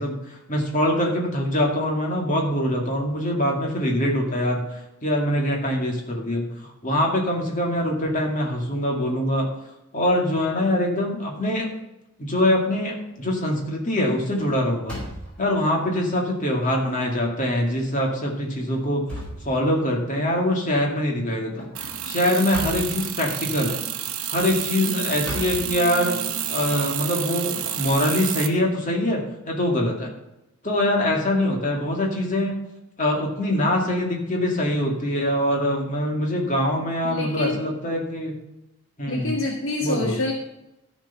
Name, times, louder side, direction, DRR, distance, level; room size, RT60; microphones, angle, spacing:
voice 1, 0.0-4.6 5.0-6.5 6.8-9.5 9.9-11.7 12.2-15.0 15.4-19.0 19.4-21.7 22.0-23.8 24.3-26.1 26.5-30.1 30.6-32.6 33.0-38.3 39.0-39.4 39.8-40.2, left 1 dB, 35° left, 0 dB, 2.2 m, -23 dB
sound 1, 12.7-13.0 13.4-13.7 14.0-15.6 16.3-16.4 16.9-17.0 17.9-18.1 18.6-20.0 21.6-23.0 24.1-26.4, equal, 5° left, 4.5 m, -37 dB
sound 2, 21.8-28.5, right 10 dB, 75° right, 1.0 m, -29 dB
voice 2, 37.0-37.6 39.1-40.3, left 2 dB, 60° left, 1 dB, 1.3 m, -27 dB
13.5 x 5.3 x 5.7 m, 0.91 s
head